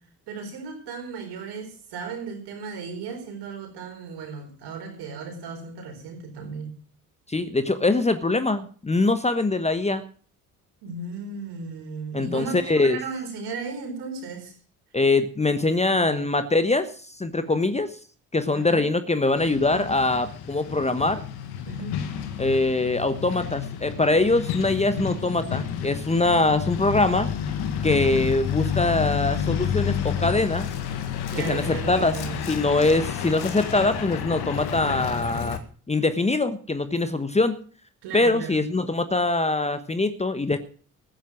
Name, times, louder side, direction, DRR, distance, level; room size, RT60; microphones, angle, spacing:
voice 1, 0.3-6.7 10.8-14.5 15.7-16.2 17.4-17.6 18.5-18.8 21.7-22.0 31.3-32.4 38.0-38.6, right 4 dB, 60° right, 5 dB, 4.5 m, -35 dB
voice 2, 7.3-10.0 12.1-13.0 14.9-17.9 18.3-21.2 22.4-27.3 27.8-30.7 31.4-32.2 32.5-35.6 35.9-37.6 38.1-40.6, left 2 dB, 15° left, 11 dB, 1.2 m, -23 dB
Truck, 19.4-35.6, left 8 dB, 55° left, 1.9 m, -30 dB
15.0 x 9.2 x 6.3 m, 0.44 s
figure-of-eight pair, 50°, 45 cm